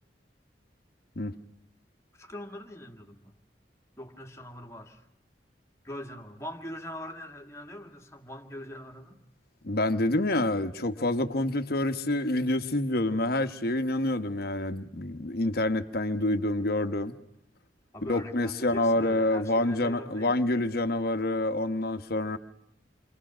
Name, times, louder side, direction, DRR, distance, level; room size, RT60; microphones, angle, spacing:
voice 1, 2.1-3.4 4.0-5.1 5.8-9.2 17.9-20.4, equal, 15° left, 2.1 m, -42 dB
voice 2, 9.6-17.2 18.1-22.4, left 1 dB, 60° left, 1.1 m, -27 dB
29.0 x 24.5 x 6.1 m
head